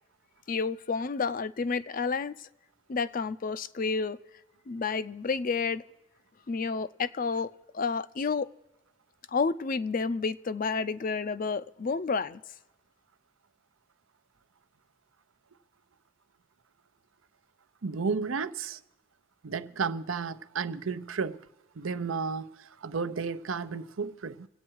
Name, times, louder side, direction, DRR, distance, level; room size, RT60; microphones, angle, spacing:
voice 1, 0.5-2.5 2.9-4.2 4.7-5.8 6.5-8.5 9.3-12.4, left 4 dB, 45° left, 0.5 m, -30 dB
voice 2, 17.8-18.8 19.4-21.4 21.8-24.5, right 5 dB, 80° right, 0.6 m, -33 dB
26.0 x 8.7 x 4.7 m
head